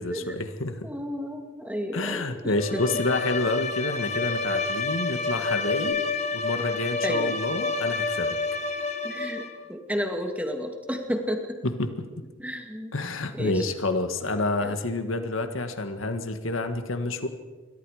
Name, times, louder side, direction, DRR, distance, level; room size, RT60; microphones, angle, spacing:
voice 1, 0.0-0.9 1.9-6.0 6.3-8.4 11.8-11.9 12.9-17.3, left 2 dB, 85° left, 8 dB, 1.8 m, -28 dB
voice 2, 0.8-2.8 5.9-6.0 7.0-7.3 9.0-11.6 12.4-12.9 13.3-13.7 14.6-14.7, equal, 5° right, 3 dB, 2.3 m, -32 dB
Bowed string instrument, 2.5-9.6, left 4 dB, 35° left, 1.6 m, -29 dB
28.0 x 23.0 x 5.0 m, 1.4 s
head